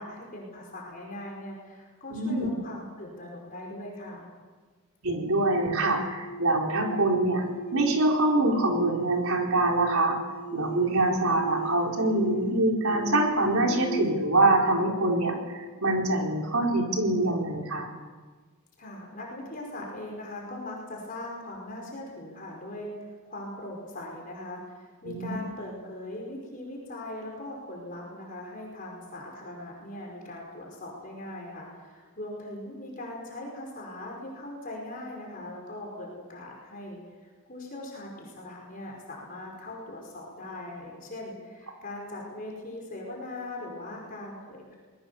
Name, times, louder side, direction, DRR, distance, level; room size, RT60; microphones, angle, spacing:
voice 1, 0.0-4.3 18.8-44.8, left 1 dB, 40° left, -1 dB, 5.1 m, -40 dB
voice 2, 2.1-2.5 5.0-7.5 7.7-10.2 10.5-17.9 25.0-25.4, right 2 dB, 75° right, 1 dB, 4.4 m, -25 dB
sound 1, 5.3-16.3, right 3 dB, 5° left, 5.8 m, -37 dB
24.5 x 20.5 x 7.1 m, 1.4 s
head